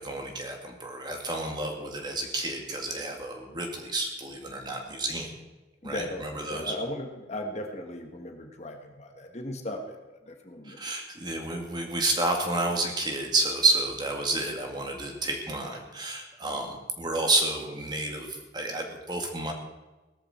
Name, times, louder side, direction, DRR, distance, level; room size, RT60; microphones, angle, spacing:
voice 1, 0.0-5.3 5.8-6.7 10.7-19.5, right 2 dB, 25° right, 2 dB, 2.2 m, -30 dB
voice 2, 5.8-10.8, left 1 dB, 40° left, 4 dB, 1.4 m, -37 dB
18.0 x 13.0 x 4.3 m, 1.1 s
head